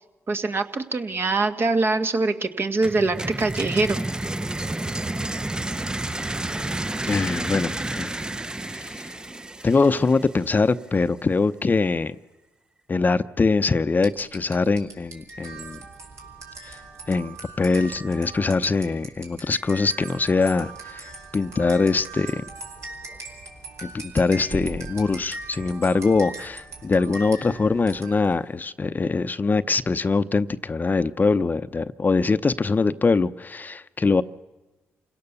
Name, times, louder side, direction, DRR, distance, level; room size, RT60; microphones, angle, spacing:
voice 1, 0.3-4.0, right 3 dB, 45° right, 1.9 m, -23 dB
sound 1, 2.8-10.6, right 2 dB, 15° right, 0.6 m, -30 dB
voice 2, 7.1-8.1 8.7-9.0 9.6-12.2 12.9-15.8 16.7-16.8 17.1-22.4 23.8-34.2, left 4 dB, 35° left, 0.8 m, -23 dB
sound 2, 14.0-28.4, right 3 dB, 65° right, 4.8 m, -40 dB
28.0 x 17.0 x 7.0 m
supercardioid pair, 55°, 5 cm